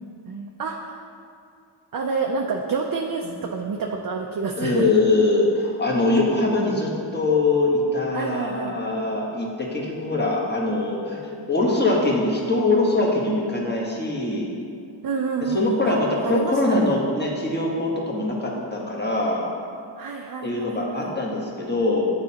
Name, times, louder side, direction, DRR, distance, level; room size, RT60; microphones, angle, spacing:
voice 1, 0.3-1.1 1.9-4.9 8.1-8.8 15.0-15.9 16.2-17.0 20.0-21.2, right 4 dB, 45° right, 2 dB, 0.5 m, -28 dB
voice 2, 4.6-11.2 11.5-14.5 15.5-19.5 20.4-22.0, left 2 dB, 20° left, -3 dB, 1.2 m, -22 dB
8.8 x 4.2 x 2.8 m, 2.4 s
cardioid pair, 40°, 47 cm